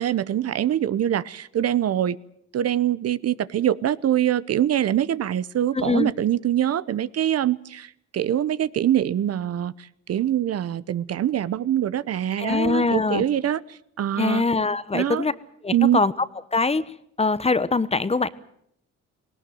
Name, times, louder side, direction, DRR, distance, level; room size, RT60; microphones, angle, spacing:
voice 1, 0.0-2.2 2.5-14.4 14.9-15.3 15.7-16.0, right 11 dB, 55° right, 18 dB, 0.8 m, -24 dB
voice 2, 5.7-6.1 12.4-13.2 14.2-15.3 15.6-16.1 16.5-16.8 17.2-18.3, left 3 dB, 20° left, 16 dB, 0.9 m, -22 dB
18.5 x 18.5 x 9.2 m, 0.71 s
cardioid pair, 90°, 30 cm